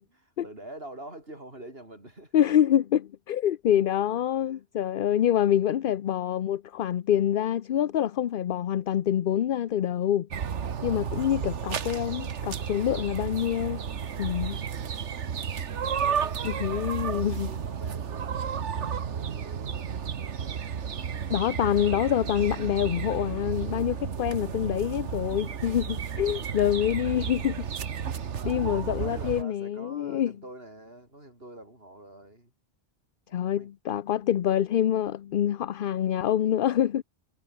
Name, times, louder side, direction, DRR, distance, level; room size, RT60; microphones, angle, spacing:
voice 1, 0.4-2.5 4.4-4.6 5.7-6.2 12.7-12.8 15.8-19.9 26.2-26.4 28.3-32.5 33.3-33.7, right 1 dB, 55° right, 7.3 m, -46 dB
voice 2, 2.3-10.3 10.8-13.9 14.2-14.6 16.4-17.5 21.3-27.7 28.4-30.3 33.3-37.0, left 10 dB, 55° left, 0.7 m, -26 dB
sound 1, 10.3-29.4, right 7 dB, 85° right, 1.5 m, -32 dB
omnidirectional pair, 1.2 m